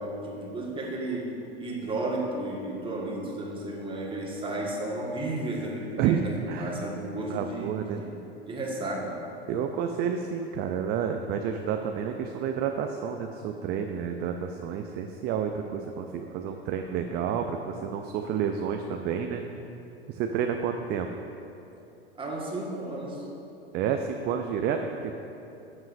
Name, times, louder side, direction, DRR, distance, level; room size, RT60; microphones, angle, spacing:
voice 1, 0.0-8.1 8.5-9.2 22.1-23.3, right 1 dB, 15° right, -2 dB, 1.5 m, -33 dB
voice 2, 6.0-6.8 7.3-8.0 9.5-19.4 20.1-21.1 23.7-25.1, right 7 dB, 30° right, 5 dB, 0.4 m, -30 dB
10.5 x 7.3 x 2.6 m, 2.9 s
hypercardioid pair, 95°, 32 cm